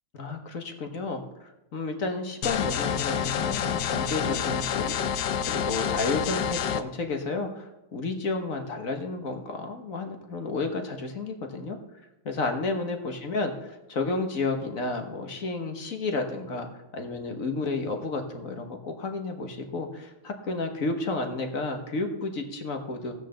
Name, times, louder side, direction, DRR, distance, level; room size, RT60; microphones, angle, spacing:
voice 1, 0.2-5.0 5.4-11.8 12.2-13.5 13.9-23.1, left 3 dB, 45° left, 5 dB, 1.6 m, -31 dB
sound 1, 2.4-6.8, left 8 dB, 70° left, 1.2 m, -28 dB
16.0 x 6.5 x 7.0 m, 0.96 s
omnidirectional pair, 2.3 m